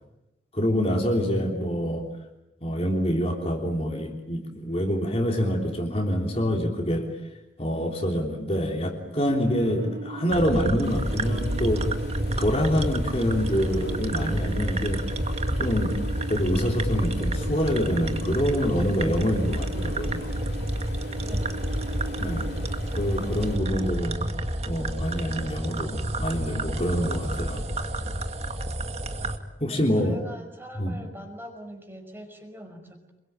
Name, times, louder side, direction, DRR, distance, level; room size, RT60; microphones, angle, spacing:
voice 1, 0.5-2.1 2.6-7.1 7.6-11.9 12.4-15.1 15.6-16.0 16.3-20.3 22.2-22.5 22.9-24.2 24.7-27.6 29.6-30.2 30.7-31.0, equal, 30° left, 1 dB, 3.5 m, -26 dB
sound 1, 9.1-23.9, right 2 dB, 60° right, 1.1 m, -39 dB
sound 2, 10.3-29.4, right 1 dB, 35° right, 2.0 m, -29 dB
sound 3, 10.8-23.6, left 2 dB, 60° left, 3.3 m, -45 dB
voice 2, 21.2-21.7 29.7-33.0, equal, 10° right, 4 dB, 5.2 m, -43 dB
27.5 x 23.0 x 9.0 m, 0.92 s
head